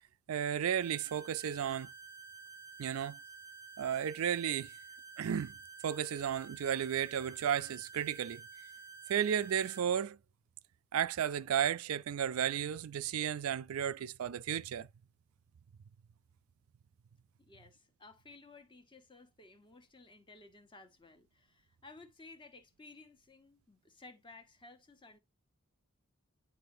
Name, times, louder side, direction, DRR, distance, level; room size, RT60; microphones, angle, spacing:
voice 1, 0.3-1.9 2.8-3.2 3.8-4.7 5.2-5.5 5.8-8.4 9.1-10.2 10.9-14.9, right 9 dB, 85° right, 0.4 m, -33 dB
sound 1, 0.8-9.8, right 5 dB, 45° left, 1.7 m, -51 dB
voice 2, 17.4-25.2, left 3 dB, 25° left, 1.2 m, -56 dB
9.9 x 4.1 x 2.6 m
head